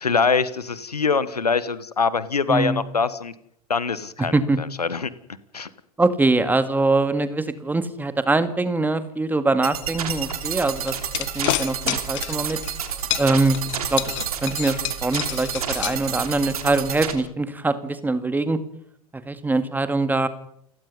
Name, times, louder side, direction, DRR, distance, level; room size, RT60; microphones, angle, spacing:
voice 1, 0.0-3.3 3.7-5.1 5.5-5.7, left 5 dB, 85° left, 17 dB, 1.3 m, -23 dB
voice 2, 2.5-2.8 4.3-4.6 6.0-12.6 13.2-13.6 13.9-14.1 14.4-18.6 19.1-20.3, right 3 dB, 10° right, 11 dB, 2.0 m, -23 dB
sound 1, 9.6-17.1, right 8 dB, 70° right, 3.1 m, -30 dB
sound 2, 10.8-12.8 13.1-16.5, left 17 dB, 55° left, 1.4 m, -28 dB
29.0 x 16.5 x 5.5 m, 0.70 s
figure-of-eight pair, 85°, 20 cm